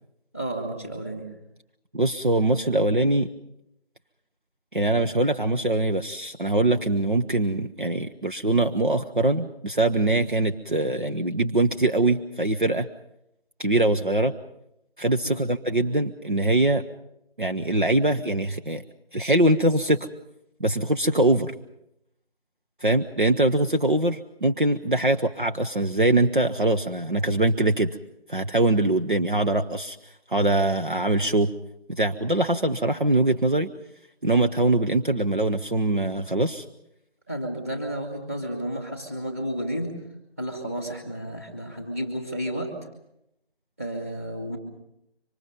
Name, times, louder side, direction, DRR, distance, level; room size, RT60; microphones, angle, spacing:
voice 1, 0.3-1.3 15.2-15.4 37.3-39.9 40.4-42.7 43.8-44.6, right 1 dB, 15° right, 4 dB, 2.4 m, -32 dB
voice 2, 1.9-3.3 4.7-12.9 13.6-14.3 15.0-16.8 17.4-18.8 19.1-20.1 20.6-21.5 22.8-28.0 28.3-30.0 30.3-31.5 31.9-33.7 34.2-36.6, right 2 dB, 50° right, 6 dB, 1.0 m, -23 dB
26.0 x 25.0 x 5.3 m, 0.83 s
figure-of-eight pair, 175°, 32 cm